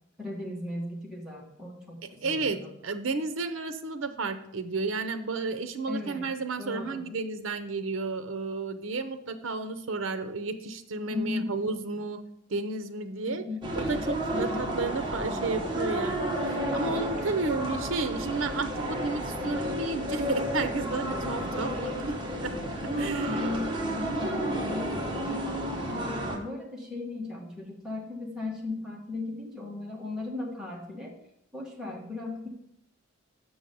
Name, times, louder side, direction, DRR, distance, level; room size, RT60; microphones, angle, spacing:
voice 1, 0.2-2.7 5.9-7.1 11.0-11.6 13.3-13.7 14.3-14.7 21.2-21.8 23.2-25.6 25.9-31.1 31.5-32.5, left 3 dB, 5° right, -3 dB, 1.6 m, -37 dB
voice 2, 2.2-12.2 12.5-13.4 13.8-22.1 22.4-22.5 23.0-23.5, right 3 dB, 70° right, 9 dB, 0.7 m, -32 dB
sound 1, 13.6-26.4, right 1 dB, 25° right, 1.1 m, -31 dB
6.2 x 6.1 x 5.3 m, 0.78 s
head